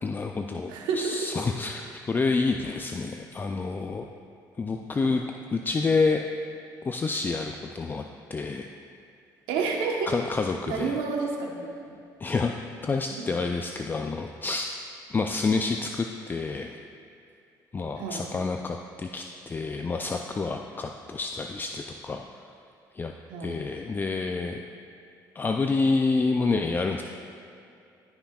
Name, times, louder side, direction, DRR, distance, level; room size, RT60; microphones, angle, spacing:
voice 1, 0.0-4.0 4.6-5.2 5.5-6.2 6.8-8.0 8.3-8.7 10.1-11.0 12.2-12.5 12.8-14.7 15.1-16.8 17.7-22.2 22.9-23.1 23.4-24.6 25.4-27.0, left 4 dB, 25° left, 3 dB, 0.4 m, -28 dB
voice 2, 0.7-1.2 5.0-5.2 9.5-10.1 10.7-11.6 11.9-12.0 13.2-13.3 18.0-18.2 23.3-23.6, right 5 dB, 90° right, 1 dB, 1.1 m, -29 dB
14.0 x 5.8 x 2.4 m, 2.5 s
cardioid pair, 90°, 8 cm